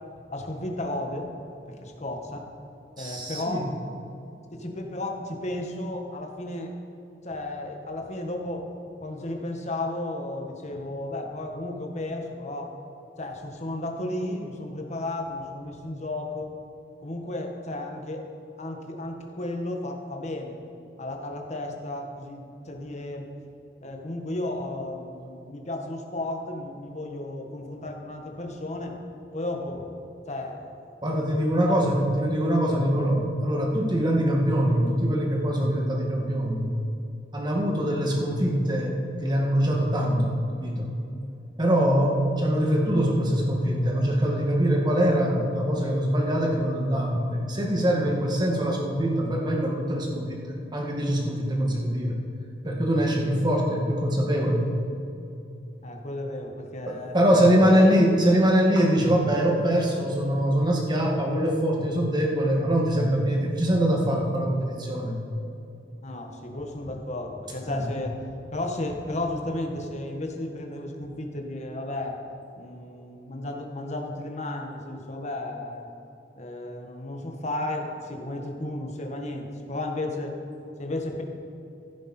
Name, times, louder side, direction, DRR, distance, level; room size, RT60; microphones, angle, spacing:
voice 1, 0.3-1.3 1.7-2.5 3.0-3.7 4.5-6.7 7.2-8.7 9.0-12.7 13.2-16.5 17.0-18.2 18.6-20.6 21.0-23.3 23.8-29.0 29.3-29.9 30.3-30.6 31.6-31.7 34.0-34.1 55.8-57.2 57.6-57.9 66.0-68.2 68.5-72.2 72.5-75.9 76.4-80.4 80.8-81.2, left 1 dB, 40° left, 2 dB, 1.5 m, -33 dB
voice 2, 3.0-3.6 31.0-36.7 37.3-40.9 41.6-52.2 52.6-54.7 56.9-65.2 67.7-67.8, equal, 25° right, 0 dB, 2.0 m, -23 dB
15.0 x 11.5 x 4.4 m, 2.8 s
head